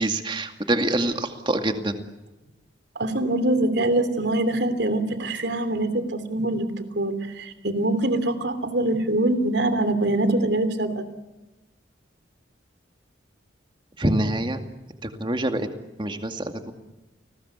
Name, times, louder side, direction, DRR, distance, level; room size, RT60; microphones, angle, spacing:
voice 1, 0.0-2.0 14.0-14.6 15.0-15.7 16.0-16.7, right 1 dB, 25° right, 6 dB, 2.2 m, -25 dB
voice 2, 2.9-11.0, right 1 dB, 65° right, 11 dB, 3.1 m, -24 dB
30.0 x 20.0 x 8.3 m, 1.1 s
head